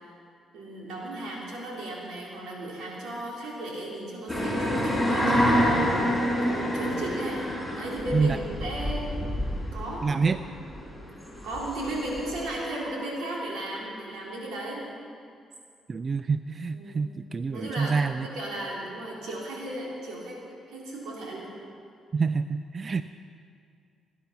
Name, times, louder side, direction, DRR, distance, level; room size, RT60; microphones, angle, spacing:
voice 1, 0.5-7.4 7.8-9.3 9.7-10.1 11.4-14.8 16.7-17.1 17.5-18.0 18.2-20.4 20.7-21.5, right 1 dB, 85° right, -4 dB, 4.0 m, -35 dB
sound 1, 4.3-12.4, equal, 5° right, 4.6 m, -27 dB
voice 2, 10.0-10.4 15.9-18.3 22.1-23.0, right 4 dB, 35° right, 11 dB, 0.4 m, -27 dB
19.0 x 10.5 x 5.8 m, 2.3 s
cardioid pair, 90°, 0 cm